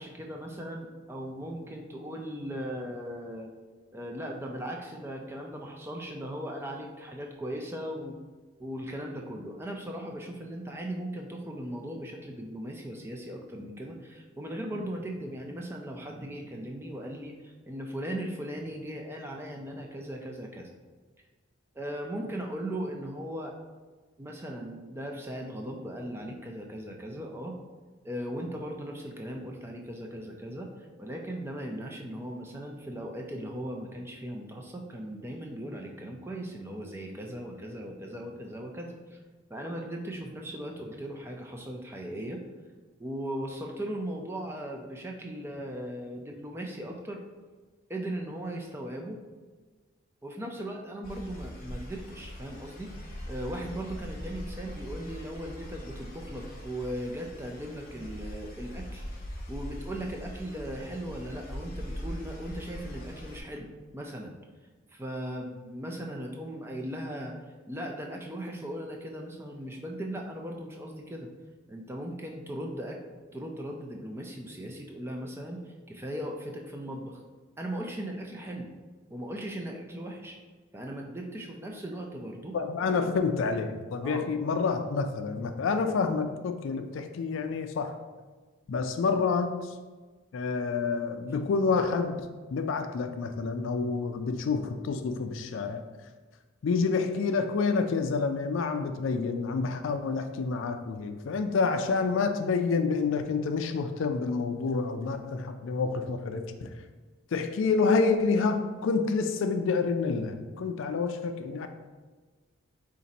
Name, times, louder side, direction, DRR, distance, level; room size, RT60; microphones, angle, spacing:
voice 1, 0.0-3.5 3.9-8.2 8.6-20.7 21.7-23.5 24.2-27.5 28.0-39.2 39.5-42.4 43.0-47.2 47.9-49.2 50.2-59.0 59.5-64.3 64.9-67.4 67.7-71.3 71.7-77.2 77.6-78.7 79.1-80.4 80.7-82.6 84.0-84.3, right 1 dB, 10° right, 1 dB, 0.4 m, -38 dB
sound 1, 51.0-63.4, equal, 45° left, 0.8 m, -41 dB
voice 2, 82.5-88.0 88.7-89.7 90.3-92.3 92.5-95.8 96.6-106.7 107.3-111.7, left 4 dB, 65° left, 8 dB, 0.3 m, -28 dB
4.0 x 2.5 x 4.0 m, 1.4 s
head